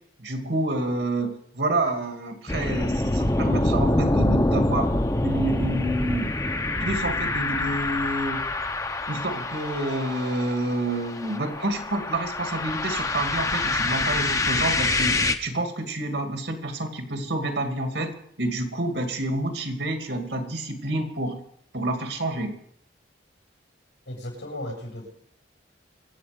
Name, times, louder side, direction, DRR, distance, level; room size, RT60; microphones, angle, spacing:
voice 1, 0.2-4.9 5.2-6.3 6.8-8.5 9.1-18.1 18.4-21.4 21.7-22.5, right 1 dB, 75° right, 5 dB, 2.5 m, -28 dB
sound 1, 2.5-15.4, left 2 dB, 20° left, 0.7 m, -26 dB
voice 2, 24.1-25.1, left 1 dB, 85° left, 0 dB, 6.5 m, -35 dB
24.5 x 8.5 x 5.2 m, 0.68 s
head